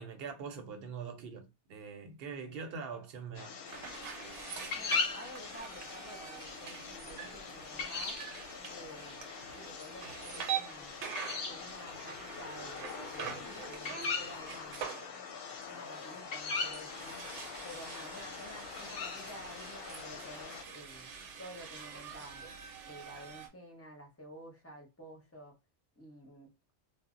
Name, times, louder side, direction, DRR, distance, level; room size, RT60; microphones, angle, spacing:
voice 1, 0.0-3.6, right 5 dB, 60° right, 0.8 m, -43 dB
sound 1, 3.3-20.6, left 5 dB, 65° left, 0.7 m, -41 dB
sound 2, 3.7-23.5, right 7 dB, 85° right, 0.9 m, -45 dB
voice 2, 4.7-8.2 8.7-9.3 9.6-11.0 11.5-15.0 15.7-17.2 17.6-21.1 21.4-22.5 22.8-25.6 26.0-26.5, equal, 15° left, 0.6 m, -51 dB
2.0 x 2.0 x 3.6 m
omnidirectional pair, 1.2 m